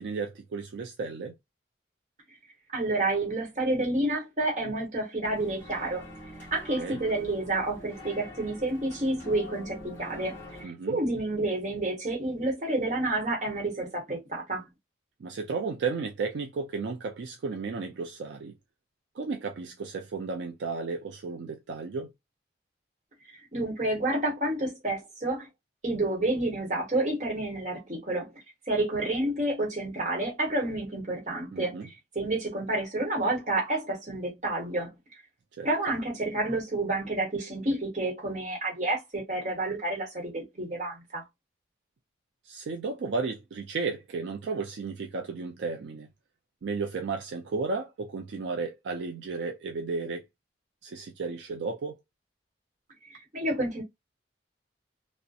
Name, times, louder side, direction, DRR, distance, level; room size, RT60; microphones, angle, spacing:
voice 1, 0.0-1.3 6.8-7.0 10.6-11.0 15.2-18.5 19.2-22.1 31.5-31.9 35.6-35.7 42.5-46.1 46.6-50.2 50.8-52.0, right 4 dB, 70° right, 0.4 m, -33 dB
voice 2, 2.7-6.0 6.5-14.6 23.3-25.5 25.8-28.3 28.7-31.8 32.1-34.9 35.6-41.2 53.1-53.8, right 2 dB, 40° right, 1.0 m, -29 dB
sound 1, 5.2-10.7, left 1 dB, 10° left, 0.8 m, -44 dB
2.6 x 2.0 x 2.3 m
head